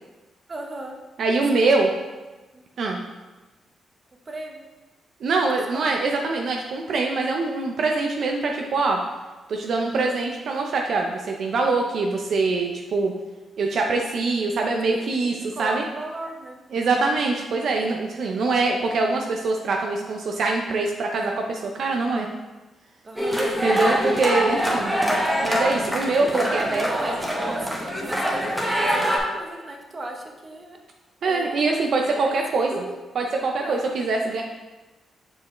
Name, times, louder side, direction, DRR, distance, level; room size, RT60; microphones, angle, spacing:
voice 1, 0.5-1.0 1.5-1.7 2.5-2.6 4.1-4.7 5.7-5.9 14.9-16.6 23.0-23.5 26.8-30.8 31.2-31.8 32.1-32.8 33.3-33.8, right 2 dB, 30° right, 2 dB, 0.9 m, -37 dB
voice 2, 1.2-1.9 2.8-3.0 5.2-9.0 9.5-13.1 13.6-15.8 16.7-22.3 23.6-24.9 25.4-26.9 31.2-32.7 33.2-34.4, right 3 dB, 65° right, 1 dB, 0.6 m, -23 dB
sound 1, 23.2-29.2, equal, 5° right, 1.1 m, -24 dB
6.5 x 4.7 x 3.1 m, 1.1 s
cardioid pair, 100°, 0 cm